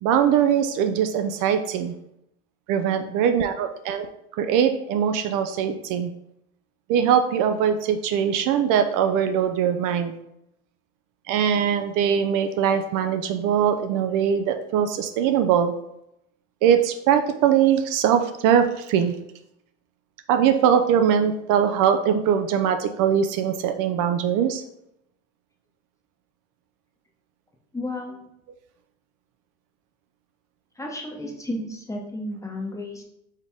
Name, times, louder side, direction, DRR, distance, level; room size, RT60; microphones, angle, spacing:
voice 1, 0.0-1.9 2.7-4.1 4.4-6.1 6.9-10.1 11.3-15.7 16.6-19.2 20.3-24.6, right 8 dB, 60° right, 8 dB, 0.5 m, -21 dB
voice 2, 27.7-28.2 30.8-33.0, left 1 dB, 10° left, 1 dB, 0.8 m, -32 dB
4.4 x 3.4 x 3.5 m, 0.80 s
supercardioid pair, 115°, 36 cm